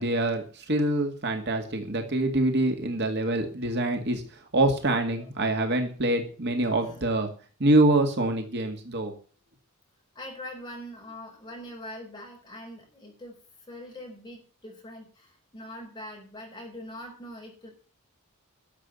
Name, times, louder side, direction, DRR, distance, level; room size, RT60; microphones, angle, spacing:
voice 1, 0.0-4.2 4.5-7.3 7.6-9.1, right 2 dB, 50° right, 4 dB, 2.1 m, -25 dB
voice 2, 6.8-7.1 10.1-13.4 13.7-17.7, left 1 dB, 20° left, 0 dB, 5.6 m, -43 dB
13.0 x 7.5 x 8.2 m, 0.39 s
head